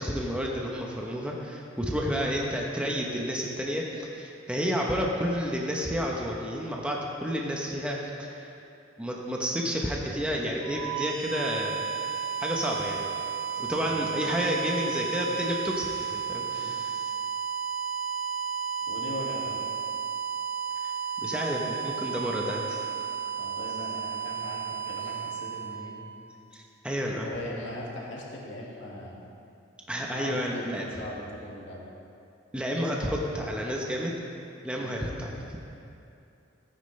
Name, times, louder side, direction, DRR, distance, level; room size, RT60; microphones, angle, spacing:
voice 1, 0.0-8.5 9.0-11.8 12.4-13.1 13.6-17.0 20.8-20.9 21.2-22.9 26.5-27.3 29.9-31.0 32.5-34.1 34.6-35.6, equal, 5° right, -2 dB, 0.9 m, -30 dB
sound 1, 10.6-26.4, right 7 dB, 80° right, 1.1 m, -33 dB
voice 2, 13.8-14.2 16.5-16.7 18.9-19.6 23.4-25.9 27.2-29.2 30.1-31.8 34.8-35.0, left 1 dB, 70° left, -3 dB, 2.1 m, -40 dB
16.0 x 9.4 x 3.3 m, 2.6 s
head